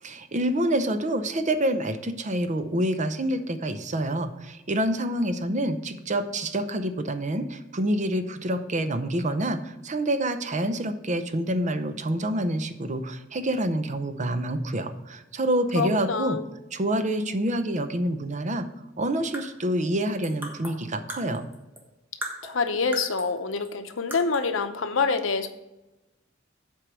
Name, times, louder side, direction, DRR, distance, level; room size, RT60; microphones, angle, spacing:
voice 1, 0.0-16.4 16.7-18.7 19.0-21.5, right 1 dB, 40° right, 9 dB, 0.7 m, -27 dB
voice 2, 15.7-16.4 22.4-25.5, left 4 dB, 85° left, 8 dB, 0.8 m, -26 dB
sound 1, 19.3-21.9 22.2-23.4 23.6-23.7 24.1-24.5, right 1 dB, 10° right, 1.4 m, -39 dB
7.9 x 4.6 x 6.1 m, 0.98 s
head